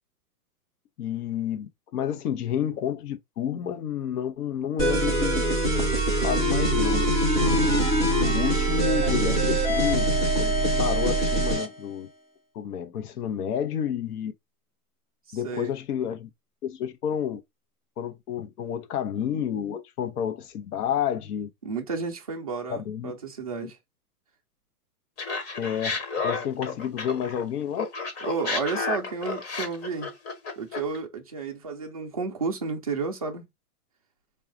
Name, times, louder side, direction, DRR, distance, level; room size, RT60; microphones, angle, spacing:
voice 1, 1.0-5.9 6.2-7.1 8.2-10.1 10.3-12.1 12.5-14.3 15.3-16.3 16.6-17.4 18.0-21.5 22.7-23.1 23.6-23.7 25.6-27.9, left 9 dB, 75° left, 0.9 m, -30 dB
sound 1, 4.8-11.7, right 1 dB, 10° left, 0.7 m, -23 dB
voice 2, 7.9-8.4 15.3-15.7 21.6-23.8 28.2-30.1 30.6-33.5, right 4 dB, 30° right, 0.3 m, -32 dB
Laughter, 25.2-27.5 27.8-31.0, left 4 dB, 40° left, 1.4 m, -31 dB
4.9 x 2.4 x 3.7 m
supercardioid pair, 170°, 46 cm